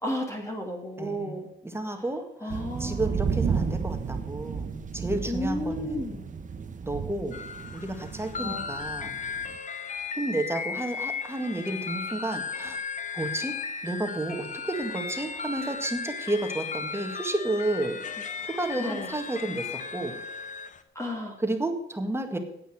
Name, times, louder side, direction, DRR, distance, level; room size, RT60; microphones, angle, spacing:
voice 1, 0.0-1.5 2.4-3.1 5.3-6.2 8.4-8.7 18.8-19.1 21.0-21.3, equal, 15° left, 1 dB, 2.4 m, -32 dB
voice 2, 1.0-6.2 6.8-7.4 7.7-9.1 10.1-12.8 13.1-13.6 13.8-18.0 18.4-20.2 21.4-22.4, right 1 dB, 10° right, 5 dB, 1.8 m, -31 dB
sound 1, 2.5-9.6, right 6 dB, 40° right, 0.9 m, -33 dB
sound 2, 7.3-20.8, left 5 dB, 40° left, 1.2 m, -36 dB
9.3 x 8.6 x 7.7 m, 0.77 s
cardioid pair, 90°, 20 cm